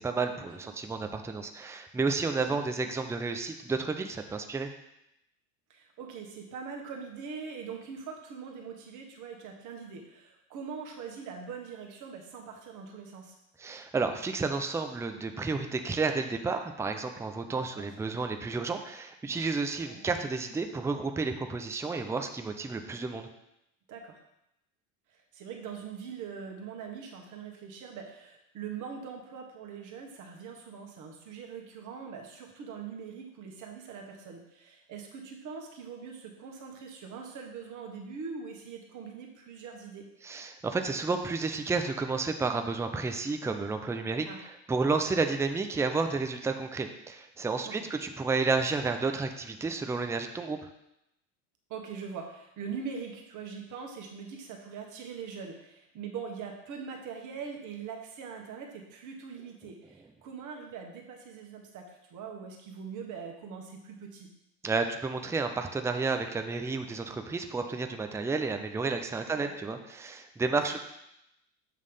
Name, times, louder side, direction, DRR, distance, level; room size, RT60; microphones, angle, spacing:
voice 1, 0.0-4.7 13.6-23.3 40.2-50.7 64.6-70.8, right 4 dB, 5° right, 6 dB, 0.5 m, -31 dB
voice 2, 5.7-13.3 17.7-17.8 19.8-20.0 23.9-24.2 25.1-40.1 44.3-44.4 47.6-47.9 51.7-64.3 69.3-69.5, right 6 dB, 50° right, 1 dB, 1.5 m, -42 dB
7.5 x 3.2 x 5.5 m, 0.84 s
supercardioid pair, 95°, 39 cm